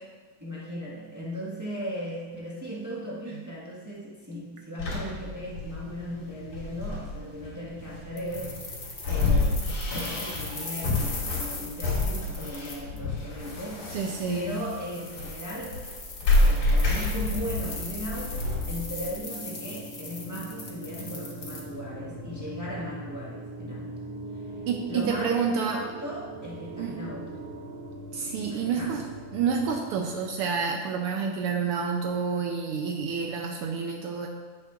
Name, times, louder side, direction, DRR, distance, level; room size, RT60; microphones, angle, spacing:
voice 1, 0.4-8.6 9.0-15.8 16.4-24.0 24.3-24.4 24.9-27.4 28.5-29.0 33.0-33.2, equal, 15° right, -6 dB, 0.6 m, -37 dB
sound 1, 4.8-19.2, left 2 dB, 80° left, 3.9 m, -28 dB
sound 2, 8.2-21.6, left 3 dB, 55° left, 0.8 m, -40 dB
voice 2, 13.9-14.6 24.7-25.8 26.8-27.0 28.1-29.0 29.3-34.3, right 6 dB, 90° right, 1 dB, 1.2 m, -29 dB
sound 3, 17.0-30.7, right 2 dB, 50° right, 2.7 m, -42 dB
15.0 x 6.4 x 2.5 m, 1.4 s
omnidirectional pair, 3.3 m